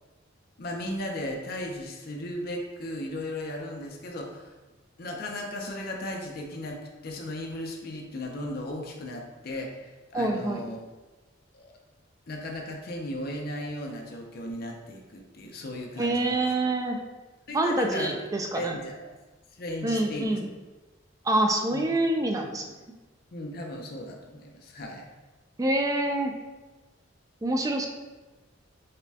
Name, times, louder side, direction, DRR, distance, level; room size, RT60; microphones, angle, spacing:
voice 1, 0.6-4.5 5.0-10.8 11.5-11.8 12.3-16.4 17.5-18.1 18.5-19.1 19.6-20.4 21.7-21.8 23.3-25.1, left 1 dB, 50° left, 1 dB, 0.6 m, -36 dB
voice 2, 10.1-10.7 16.0-17.0 17.5-18.8 19.8-20.5 21.2-22.7 25.6-26.3 27.4-27.9, right 1 dB, 20° right, 3 dB, 0.3 m, -26 dB
5.0 x 2.2 x 2.7 m, 1.2 s
head